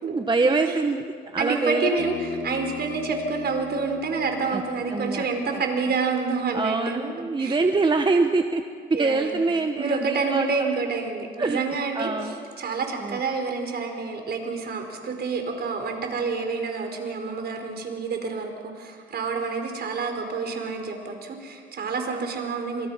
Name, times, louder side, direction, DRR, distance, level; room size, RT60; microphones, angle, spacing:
voice 1, 0.1-1.9 4.5-4.6 4.9-5.3 5.5-5.6 6.5-8.6 8.9-10.5 11.4-11.6 11.9-12.4 13.0-13.2, right 3 dB, 25° right, 5 dB, 1.3 m, -24 dB
voice 2, 1.4-7.1 7.4-7.6 8.9-9.5 9.8-22.9, right 4 dB, 55° right, 4 dB, 4.9 m, -28 dB
Bass guitar, 2.0-6.2, left 7 dB, 70° left, 2.8 m, -40 dB
27.5 x 26.5 x 5.8 m, 2.1 s
cardioid pair, 90°, 20 cm